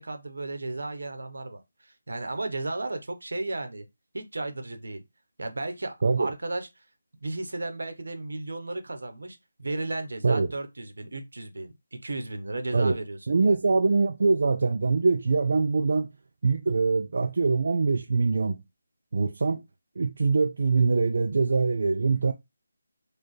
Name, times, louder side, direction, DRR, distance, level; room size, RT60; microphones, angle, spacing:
voice 1, 0.0-3.9 4.1-5.0 5.4-6.7 7.2-13.7, right 2 dB, 80° right, 0.9 m, -34 dB
voice 2, 6.0-6.3 10.2-10.5 12.7-13.0 13.3-16.1 16.4-18.6 19.1-19.6 20.0-22.3, right 4 dB, 55° right, 0.4 m, -23 dB
4.4 x 2.4 x 3.1 m
figure-of-eight pair, 170°, 0 cm